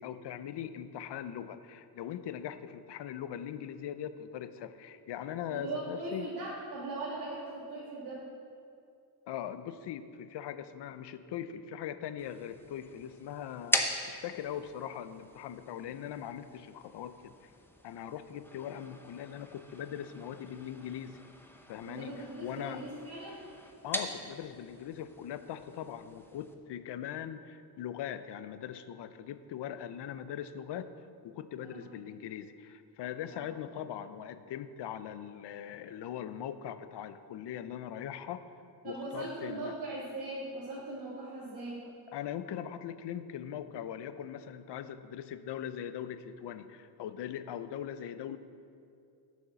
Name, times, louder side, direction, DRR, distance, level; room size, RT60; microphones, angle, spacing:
voice 1, 0.0-6.3 9.3-13.8 14.1-17.5 17.8-21.2 21.7-22.8 23.8-30.9 31.2-38.4 38.8-39.7 42.1-48.4, left 9 dB, 80° left, 12 dB, 0.6 m, -41 dB
voice 2, 5.5-8.2 21.8-23.4 31.6-31.8 33.3-33.5 38.8-41.8, right 2 dB, 60° right, -8 dB, 2.3 m, -40 dB
sound 1, 12.2-26.5, left 1 dB, 5° left, 0.8 m, -41 dB
7.4 x 6.4 x 6.8 m, 2.5 s
cardioid pair, 90°, 41 cm